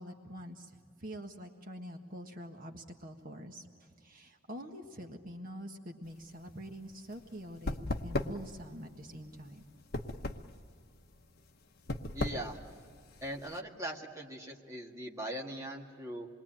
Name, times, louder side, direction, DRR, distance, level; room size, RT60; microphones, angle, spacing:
voice 1, 0.0-9.6, equal, 40° right, 2 dB, 1.5 m, -46 dB
sound 1, 6.0-13.6, left 2 dB, 50° left, 1.1 m, -38 dB
voice 2, 12.1-12.6 13.2-16.3, right 1 dB, 15° right, -1 dB, 1.8 m, -40 dB
27.0 x 22.0 x 8.9 m, 2.2 s
head